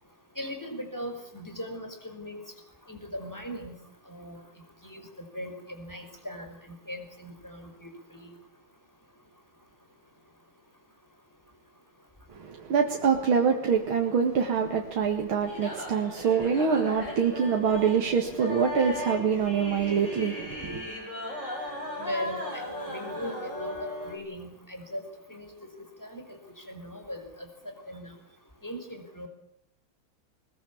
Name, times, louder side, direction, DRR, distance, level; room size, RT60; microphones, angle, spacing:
voice 1, 0.4-2.4 2.9-3.7 4.1-4.4 4.8-5.0 5.3-6.5 6.9-7.6 22.0-23.8 24.1-25.0 25.3-25.5 26.0-27.2 27.9-28.1 28.6-29.3, equal, 10° left, 4 dB, 5.4 m, -38 dB
voice 2, 12.4-20.8, right 6 dB, 80° right, 2 dB, 2.7 m, -25 dB
sound 1, 15.4-24.2, left 1 dB, 35° left, 8.3 m, -37 dB
21.5 x 21.5 x 8.6 m, 0.72 s
omnidirectional pair, 2.2 m